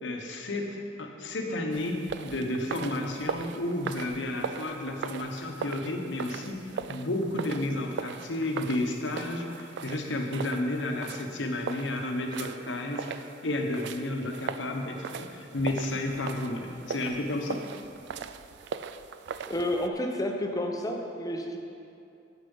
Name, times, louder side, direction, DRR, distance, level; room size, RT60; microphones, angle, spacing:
voice 1, 0.0-17.6, left 1 dB, 85° left, 3 dB, 1.0 m, -32 dB
sound 1, 1.7-19.9, right 6 dB, 65° right, 0.3 m, -39 dB
voice 2, 19.5-21.6, left 1 dB, 20° left, 2 dB, 0.8 m, -30 dB
8.2 x 7.0 x 5.5 m, 2.6 s
head